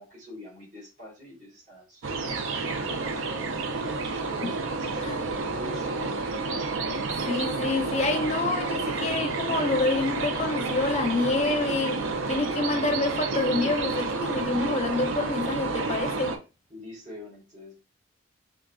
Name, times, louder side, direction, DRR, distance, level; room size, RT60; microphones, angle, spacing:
voice 1, 0.0-3.1 3.9-5.9 16.7-17.8, left 1 dB, 40° right, 1.6 m, -45 dB
sound 1, 2.0-16.4, right 3 dB, 75° right, 0.5 m, -30 dB
voice 2, 7.3-16.4, left 2 dB, 35° left, 0.5 m, -27 dB
3.7 x 3.5 x 2.3 m
head